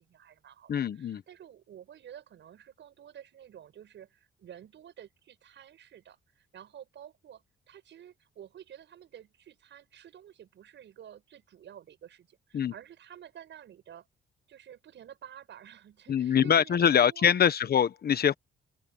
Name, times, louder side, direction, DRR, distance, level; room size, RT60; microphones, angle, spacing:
voice 1, 0.0-14.1 14.5-17.3, right 10 dB, 65° right, 6.5 m, -51 dB
voice 2, 0.7-1.2 12.5-12.7 16.1-18.3, left 8 dB, 50° left, 1.3 m, -24 dB
open air
cardioid pair, 90°, 20 cm